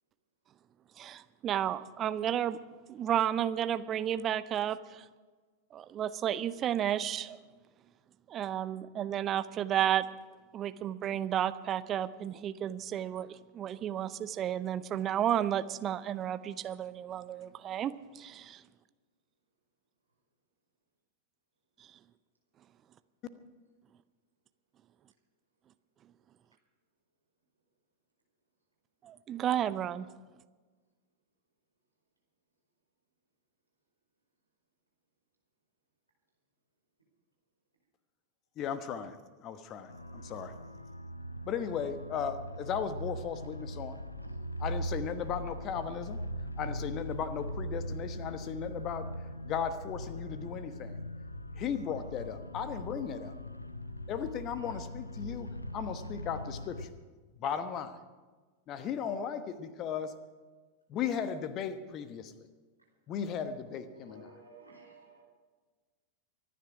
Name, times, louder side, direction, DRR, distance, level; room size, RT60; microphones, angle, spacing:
voice 1, 1.0-2.6 2.9-5.1 5.7-7.4 8.3-10.1 10.5-18.6 29.0-30.1, right 10 dB, 30° right, 14 dB, 0.6 m, -32 dB
voice 2, 38.6-39.2 39.4-40.5 41.5-44.0 44.6-46.2 46.6-49.1 49.4-51.0 51.6-53.3 54.1-55.5 55.7-56.9 57.4-58.0 58.7-60.1 60.9-62.5 63.1-64.2, left 7 dB, 35° left, 11 dB, 1.1 m, -36 dB
sound 1, 39.9-56.9, equal, 85° left, 0.8 m, -40 dB
voice 3, 62.8-65.2, right 3 dB, 85° right, -2 dB, 4.7 m, -58 dB
24.5 x 10.0 x 4.9 m, 1.4 s
figure-of-eight pair, 90°, 0 cm